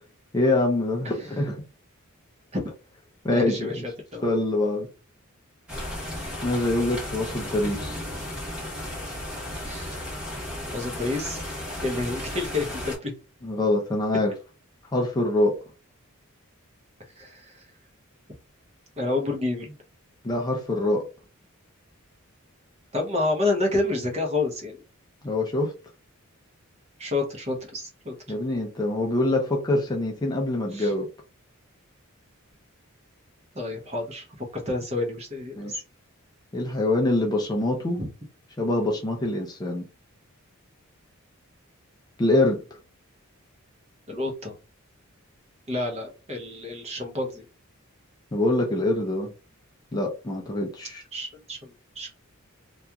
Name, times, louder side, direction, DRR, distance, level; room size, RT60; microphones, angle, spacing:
voice 1, 0.3-1.6 3.2-3.8 4.2-4.9 6.4-8.0 13.4-14.3 14.9-15.6 20.2-21.0 25.2-25.7 28.3-31.1 35.6-35.8 36.5-38.0 38.6-39.8 42.2-42.6 48.3-49.3 49.9-51.0, left 2 dB, 20° left, 0.4 m, -24 dB
voice 2, 3.3-4.2 9.6-10.0 10.7-11.4 11.8-13.1 17.2-17.6 19.0-19.7 22.9-24.8 27.0-28.1 30.7-30.9 33.5-35.8 38.0-38.1 44.1-44.5 45.7-47.4 51.1-52.1, left 2 dB, 30° right, 0.7 m, -29 dB
sound 1, 5.7-13.0, left 1 dB, 5° right, 1.1 m, -34 dB
2.8 x 2.4 x 2.2 m
head